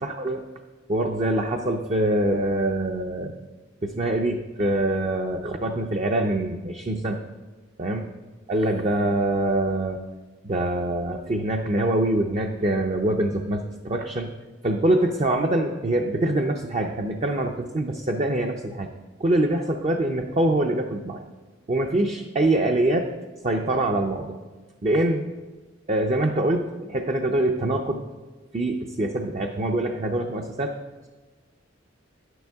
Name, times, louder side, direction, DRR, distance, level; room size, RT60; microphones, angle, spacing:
voice 1, 0.0-0.4 0.9-3.3 3.8-7.2 7.8-8.0 8.5-10.0 10.4-14.3 14.6-18.9 19.2-21.2 21.7-23.1 23.4-24.4 24.8-25.3 25.9-28.0 28.5-30.8, right 1 dB, 35° right, 3 dB, 0.5 m, -24 dB
10.5 x 9.2 x 3.5 m, 1.3 s
head